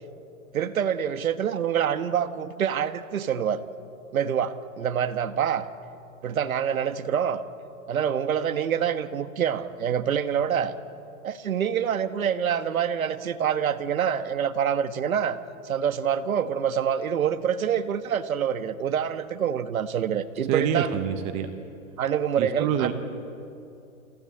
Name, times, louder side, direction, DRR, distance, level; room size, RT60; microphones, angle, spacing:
voice 1, 0.5-3.6 4.1-5.7 6.2-7.4 7.9-10.7 11.2-15.4 15.6-20.9 22.0-22.9, right 8 dB, 75° right, 11 dB, 1.5 m, -26 dB
voice 2, 20.5-21.5 22.4-22.9, right 9 dB, 15° right, 8 dB, 0.6 m, -26 dB
27.5 x 16.5 x 8.6 m, 2.7 s
hypercardioid pair, 150°, 42 cm